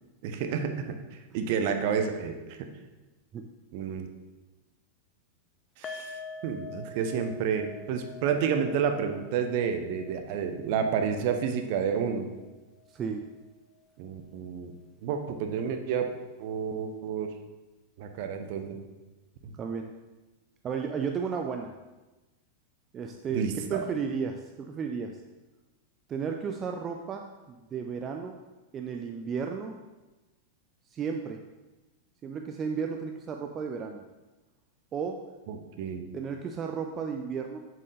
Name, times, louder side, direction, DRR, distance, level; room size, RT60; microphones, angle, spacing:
voice 1, 0.2-1.0 1.3-2.7 3.7-4.1 5.8-6.2 6.4-12.3 14.0-14.7 15.0-16.1 16.4-17.3 18.0-18.8 19.4-19.5 23.3-23.8 35.5-36.1, right 7 dB, 50° right, 6 dB, 0.9 m, -30 dB
sound 1, 5.8-13.0 13.3-13.5 13.9-14.0, left 3 dB, 25° left, 0.7 m, -46 dB
voice 2, 12.9-13.3 19.6-19.9 20.6-21.7 22.9-25.2 26.1-28.4 28.7-29.7 30.9-31.4 32.2-34.0 34.9-35.2 36.1-37.6, right 6 dB, 25° right, 4 dB, 0.5 m, -33 dB
7.6 x 7.4 x 3.3 m, 1.1 s
figure-of-eight pair, 90°, 0 cm